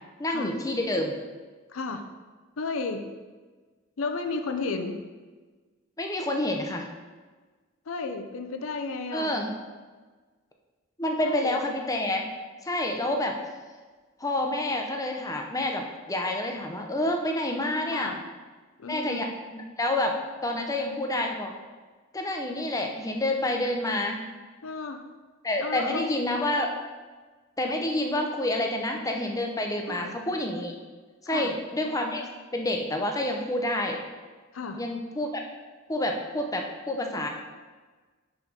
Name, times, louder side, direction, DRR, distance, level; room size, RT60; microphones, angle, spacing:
voice 1, 0.2-1.1 6.0-6.9 9.1-9.5 11.0-12.3 12.6-13.4 14.2-18.1 18.9-20.2 20.4-21.5 22.1-24.2 25.4-26.7 27.6-30.7 31.2-32.2 32.5-34.0 34.8-35.4 35.9-37.3, left 1 dB, 15° left, 2 dB, 0.7 m, -28 dB
voice 2, 1.7-2.0 2.6-3.0 4.0-5.0 7.9-9.3 11.2-11.6 17.9-18.2 18.8-19.3 24.6-25.0 25.6-26.2 29.9-30.2 31.3-31.5 34.5-34.8, left 4 dB, 85° left, 6 dB, 0.7 m, -33 dB
5.1 x 4.9 x 5.3 m, 1.4 s
head